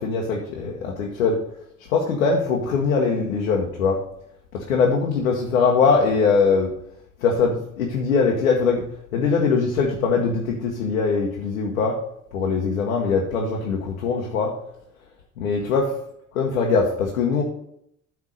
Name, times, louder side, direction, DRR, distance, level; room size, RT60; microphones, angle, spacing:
voice 1, 0.0-1.4 1.9-4.0 4.5-6.7 7.2-8.8 9.1-12.0 12.3-14.5 15.4-15.9 16.3-17.4, left 5 dB, 90° left, -1 dB, 1.1 m, -21 dB
8.4 x 3.6 x 6.3 m, 0.73 s
hypercardioid pair, 65°, 40 cm